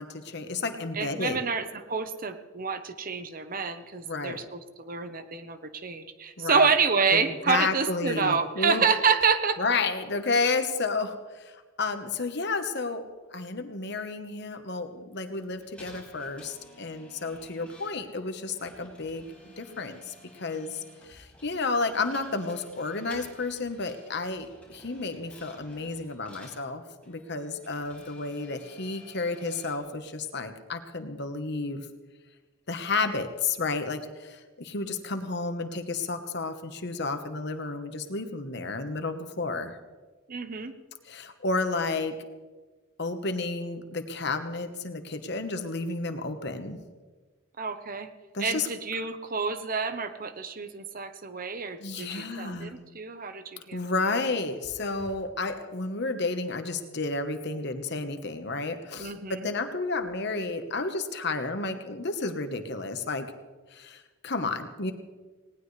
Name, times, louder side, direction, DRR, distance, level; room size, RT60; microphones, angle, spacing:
voice 1, 0.0-1.4 4.0-4.4 6.4-6.7 7.1-8.8 9.6-11.5 11.8-19.2 19.6-20.8 21.1-31.8 32.7-39.8 41.0-42.1 43.0-46.8 48.3-48.7 51.8-52.8 53.7-63.3 63.7-64.9, left 3 dB, 55° left, 7 dB, 1.3 m, -31 dB
voice 2, 0.9-9.6 40.3-40.7 47.6-48.1 48.4-54.1 59.0-59.5, right 5 dB, 45° right, 9 dB, 1.0 m, -28 dB
sound 1, 15.1-26.6 27.0-29.8, left 1 dB, 5° left, 5.3 m, -53 dB
19.0 x 18.5 x 3.3 m, 1.3 s
head